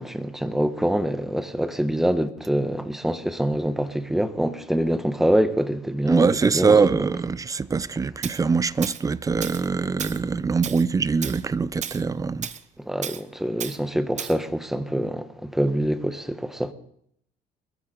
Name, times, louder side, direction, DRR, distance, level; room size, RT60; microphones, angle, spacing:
voice 1, 0.0-7.1 12.9-16.7, equal, ahead, 1.1 m, -25 dB
voice 2, 6.1-12.5, right 5 dB, 20° right, 0.5 m, -23 dB
Tools, 8.2-8.4 8.8-9.0 9.4-9.7 10.0-10.2 10.6-10.8 11.2-11.4 11.8-12.0 12.4-12.6 13.0-13.2 13.6-13.8 14.2-14.4, right 8 dB, 45° right, 0.8 m, -33 dB
22.0 x 14.0 x 3.9 m
cardioid pair, 110°, 17 cm